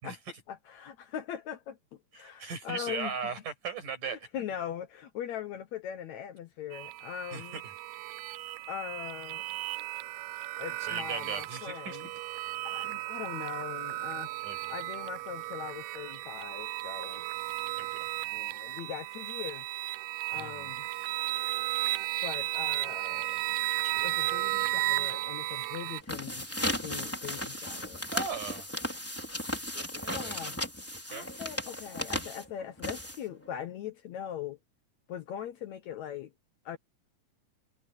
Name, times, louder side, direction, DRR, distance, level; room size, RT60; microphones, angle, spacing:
voice 1, 0.5-1.8 2.1-3.3 4.0-7.6 8.7-9.5 10.6-12.1 12.6-14.3 14.7-17.2 18.3-19.7 20.3-20.9 22.2-23.4 24.0-26.5 26.8-28.1 29.5-30.5 31.1-34.6 35.1-36.3 36.7-36.8, left 9 dB, 70° left, 1.8 m, -41 dB
voice 2, 2.1-4.2 7.3-7.7 10.8-12.0 14.4-14.8 17.8-18.1 20.3-20.7 28.1-28.7 30.0-30.4 31.1-31.3, right 5 dB, 60° right, 7.3 m, -38 dB
sound 1, 6.7-26.0, right 18 dB, 80° right, 1.8 m, -34 dB
sound 2, 25.9-33.5, equal, 5° left, 3.6 m, -36 dB
omnidirectional pair, 4.2 m